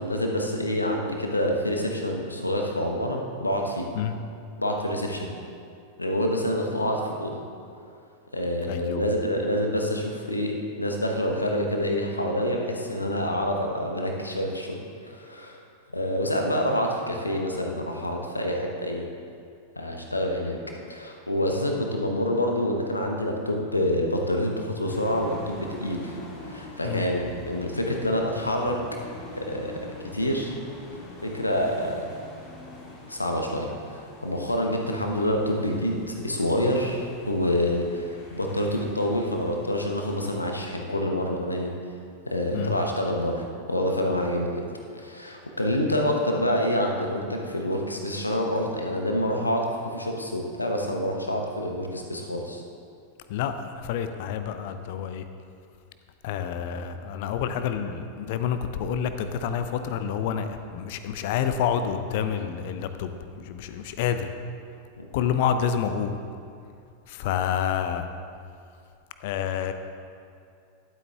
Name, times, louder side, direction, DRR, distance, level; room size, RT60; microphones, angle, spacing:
voice 1, 0.0-3.9 4.6-5.3 6.0-7.4 8.3-15.6 15.9-19.1 19.8-20.6 20.9-26.2 26.5-28.8 29.4-30.5 31.2-32.1 33.1-33.7 34.2-41.7 42.2-44.6 44.9-52.6 65.0-65.1, left 1 dB, 85° left, 2 dB, 1.0 m, -27 dB
voice 2, 8.7-9.1 26.8-27.1 42.5-42.8 53.3-55.2 56.2-63.1 63.5-64.3 65.1-66.1 67.1-68.1 69.2-69.7, left 8 dB, 50° left, 9 dB, 0.6 m, -28 dB
sound 1, 24.9-40.8, left 2 dB, 35° left, 2.3 m, -44 dB
12.0 x 8.0 x 3.5 m, 2.4 s
figure-of-eight pair, 90°, 0 cm